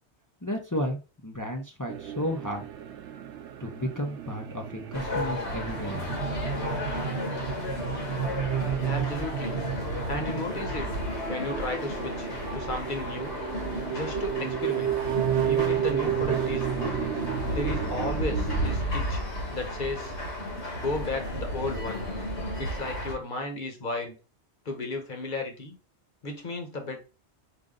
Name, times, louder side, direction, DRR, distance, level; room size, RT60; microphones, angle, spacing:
voice 1, 0.4-2.6 3.6-6.1, equal, 20° left, 2 dB, 0.5 m, -33 dB
sound 1, 1.9-18.8, right 10 dB, 90° right, 0.9 m, -32 dB
sound 2, 4.9-23.1, left 1 dB, 80° left, 1.7 m, -33 dB
voice 2, 8.8-9.6 10.1-10.9 11.3-13.3 13.9-15.0 15.4-17.0 17.5-19.2 19.5-20.1 20.7-22.1 22.6-24.1 24.6-25.8 26.2-27.0, left 2 dB, 45° left, 4 dB, 1.2 m, -34 dB
5.1 x 2.6 x 3.7 m, 0.32 s
omnidirectional pair, 1.1 m